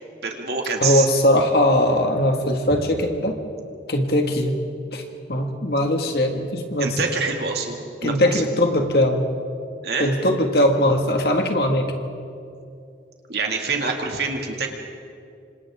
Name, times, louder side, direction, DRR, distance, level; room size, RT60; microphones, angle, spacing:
voice 1, 0.2-1.1 6.8-8.4 9.8-10.1 13.3-14.7, right 4 dB, 65° right, 2 dB, 2.4 m, -26 dB
voice 2, 0.8-3.3 3.9-4.6 4.9-5.0 5.3-7.0 8.0-9.3 10.0-11.9, left 1 dB, 60° left, 3 dB, 2.0 m, -20 dB
27.5 x 25.5 x 3.8 m, 2.5 s
head